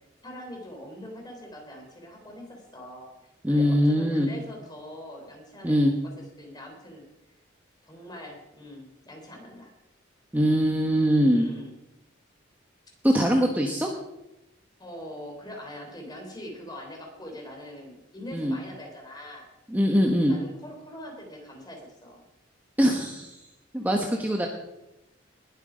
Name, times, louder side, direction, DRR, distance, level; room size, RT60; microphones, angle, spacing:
voice 1, 0.0-3.1 3.5-7.1 7.8-9.7 11.3-11.8 14.8-19.5 20.2-22.2, equal, 20° left, 1 dB, 3.6 m, -43 dB
voice 2, 3.4-4.3 5.6-5.9 10.3-11.5 13.0-13.9 18.3-18.6 19.7-20.4 22.8-23.3 23.7-24.5, equal, 10° right, 1 dB, 1.1 m, -22 dB
20.0 x 8.2 x 5.1 m, 0.92 s
head